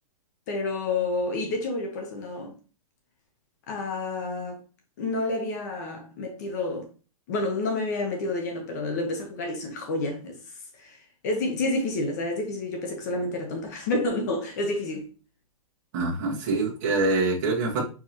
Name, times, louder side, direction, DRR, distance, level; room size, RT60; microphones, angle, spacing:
voice 1, 0.5-2.5 3.7-4.6 5.0-6.9 7.3-10.4 10.8-15.1 16.5-16.6, left 2 dB, 30° left, 0.8 m, -29 dB
voice 2, 15.9-17.8, right 3 dB, 30° right, 1.5 m, -25 dB
4.7 x 3.7 x 2.9 m
hypercardioid pair, 175°, 18 cm